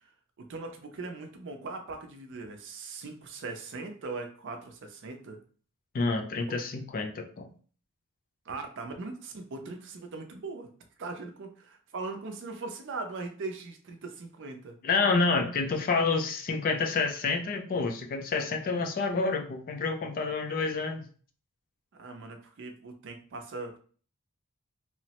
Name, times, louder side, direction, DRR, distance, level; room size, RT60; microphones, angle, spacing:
voice 1, 0.4-5.4 6.5-6.6 8.5-10.7 11.0-14.8 22.0-23.8, right 3 dB, 60° right, 4 dB, 0.5 m, -40 dB
voice 2, 5.9-7.5 14.8-21.1, left 4 dB, 40° left, 5 dB, 0.4 m, -28 dB
3.0 x 2.0 x 2.8 m, 0.43 s
head